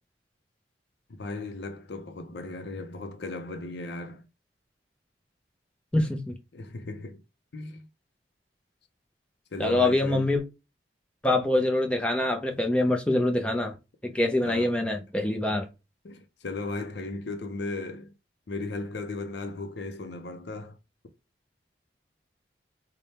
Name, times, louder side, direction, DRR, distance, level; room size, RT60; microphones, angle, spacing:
voice 1, 1.1-4.3 6.5-7.2 7.5-7.9 9.5-10.3 14.4-14.7 16.0-18.1 18.5-20.8, left 3 dB, 70° left, 0.6 m, -36 dB
voice 2, 5.9-6.3 9.6-10.4 11.2-13.7 14.0-15.7, left 1 dB, 5° left, 0.6 m, -25 dB
3.3 x 2.2 x 4.1 m
head